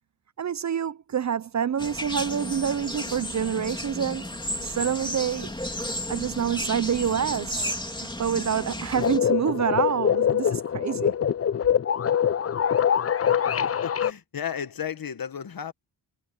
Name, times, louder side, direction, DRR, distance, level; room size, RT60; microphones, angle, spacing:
voice 1, 0.4-4.3 4.6-5.5 6.1-11.1, right 8 dB, 40° right, 0.5 m, -27 dB
sound 1, 1.8-9.2, left 1 dB, 10° left, 3.4 m, -33 dB
sound 2, 8.9-14.1, left 8 dB, 35° left, 0.5 m, -24 dB
voice 2, 13.8-15.7, left 8 dB, 55° left, 1.3 m, -33 dB
cardioid pair, 85°, 43 cm